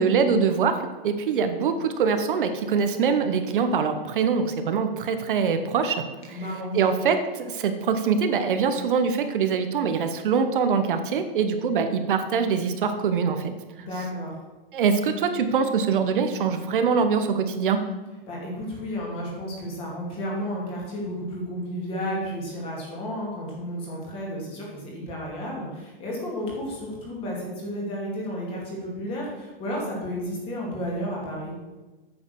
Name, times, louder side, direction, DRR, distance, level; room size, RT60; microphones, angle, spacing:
voice 1, 0.0-6.0 6.3-6.4 6.7-13.5 13.8-13.9 14.7-17.8, right 6 dB, 60° right, 8 dB, 1.0 m, -23 dB
voice 2, 6.3-6.8 13.8-14.4 18.3-31.6, equal, 20° left, -3 dB, 2.3 m, -32 dB
8.7 x 6.4 x 6.5 m, 1.2 s
hypercardioid pair, 175°, 29 cm